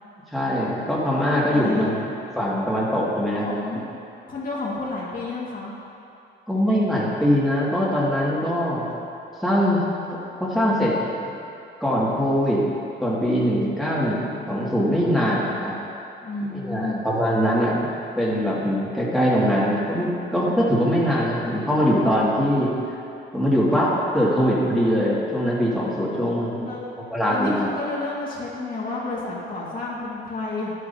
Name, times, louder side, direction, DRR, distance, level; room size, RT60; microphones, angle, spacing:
voice 1, 0.3-3.6 6.5-8.8 9.4-11.0 11.8-12.6 13.0-15.7 16.5-17.8 18.2-22.7 23.3-26.7 27.1-27.7, equal, ahead, -7 dB, 2.1 m, -22 dB
voice 2, 1.5-2.1 3.4-3.8 4.3-5.7 16.2-17.0 26.1-26.9 27.3-30.7, left 3 dB, 45° left, -6 dB, 1.9 m, -31 dB
11.0 x 9.7 x 2.8 m, 2.8 s
cardioid pair, 90°, 20 cm